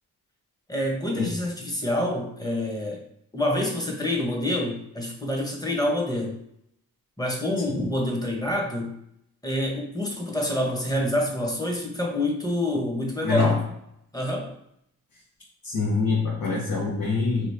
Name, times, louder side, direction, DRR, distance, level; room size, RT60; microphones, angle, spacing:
voice 1, 0.7-3.0 3.3-6.4 7.2-8.9 9.4-13.6 14.1-14.5, left 1 dB, 10° left, 0 dB, 1.0 m, -27 dB
voice 2, 13.2-13.6 15.6-17.5, left 4 dB, 55° left, -5 dB, 1.0 m, -24 dB
3.0 x 2.4 x 3.4 m, 0.73 s
cardioid pair, 50°, 39 cm